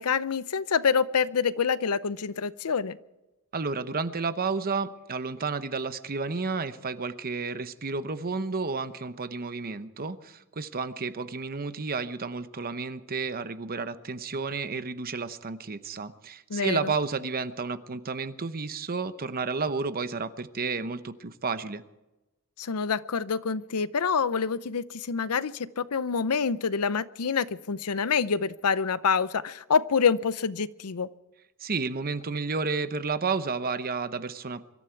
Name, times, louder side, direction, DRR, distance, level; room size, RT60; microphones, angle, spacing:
voice 1, 0.0-3.0 16.5-16.9 22.6-31.1, left 6 dB, 85° left, 16 dB, 0.7 m, -26 dB
voice 2, 3.5-21.8 31.6-34.7, right 4 dB, 40° right, 12 dB, 0.9 m, -31 dB
23.5 x 13.5 x 4.6 m, 1.0 s
head